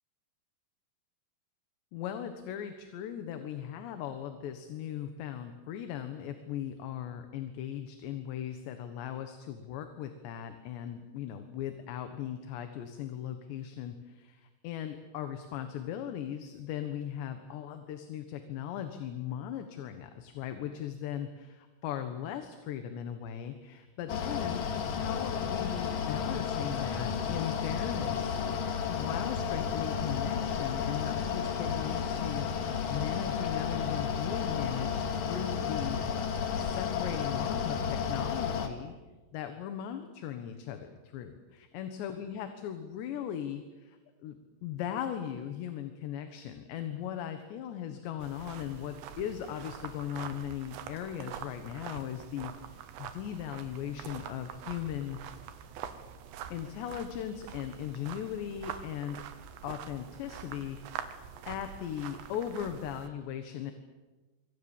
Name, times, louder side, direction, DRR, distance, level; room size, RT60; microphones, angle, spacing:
voice 1, 1.9-24.6 24.9-28.4 28.9-32.5 32.9-36.0 36.6-39.0 39.3-44.0 44.2-55.2 56.5-59.2 59.6-60.8 61.5-63.7, left 10 dB, 80° left, 7 dB, 3.6 m, -38 dB
Mechanical fan, 24.1-38.7, left 7 dB, 55° left, 3.4 m, -32 dB
sound 1, 48.2-63.1, right 8 dB, 85° right, 3.7 m, -45 dB
26.5 x 25.5 x 7.3 m, 1.2 s
omnidirectional pair, 5.0 m